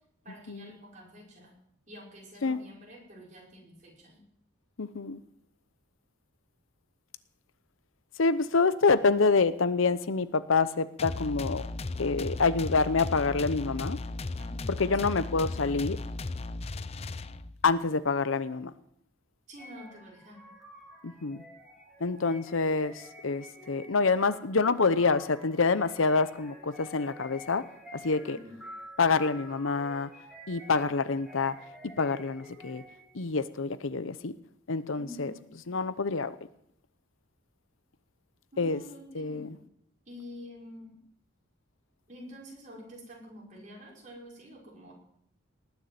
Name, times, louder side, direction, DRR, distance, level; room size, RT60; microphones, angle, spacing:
voice 1, 0.2-1.6 1.9-4.2 14.4-15.2 19.5-20.4 28.2-28.6 35.0-35.4 38.5-39.6 40.1-41.0 42.1-44.9, left 1 dB, 40° right, 5.7 m, -48 dB
voice 2, 4.8-5.2 8.2-11.6 12.0-14.0 14.8-16.0 17.6-18.7 21.0-21.4 22.0-27.6 27.9-28.4 29.0-30.1 30.5-31.6 32.0-32.8 33.1-34.3 34.7-35.3 35.7-36.4 38.6-38.8 39.1-39.5, left 4 dB, 80° left, 0.8 m, -27 dB
sound 1, 11.0-17.7, left 2 dB, 30° left, 0.5 m, -36 dB
sound 2, 19.6-33.2, equal, ahead, 2.9 m, -50 dB
19.0 x 7.1 x 9.4 m
head